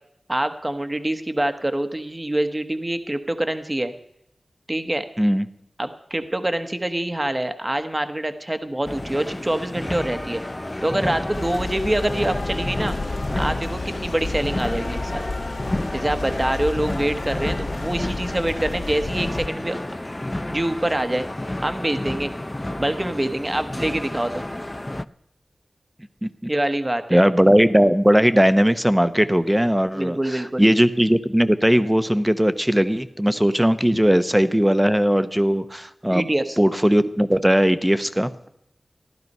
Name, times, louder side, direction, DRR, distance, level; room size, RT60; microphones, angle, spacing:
voice 1, 0.3-3.9 4.7-5.1 5.8-10.4 10.8-13.0 13.3-15.2 15.9-19.8 20.5-21.3 21.6-22.3 22.7-24.5 26.5-27.2 29.9-30.7 36.1-36.6, right 1 dB, 25° right, 9 dB, 1.1 m, -25 dB
sound 1, 8.8-25.0, left 1 dB, 20° left, 0.5 m, -31 dB
sound 2, 11.3-19.5, left 3 dB, 75° left, 2.2 m, -31 dB
voice 2, 27.1-36.3 36.6-38.3, equal, 10° right, 12 dB, 0.9 m, -18 dB
15.0 x 12.0 x 5.5 m, 0.76 s
wide cardioid pair, 70°, 0 cm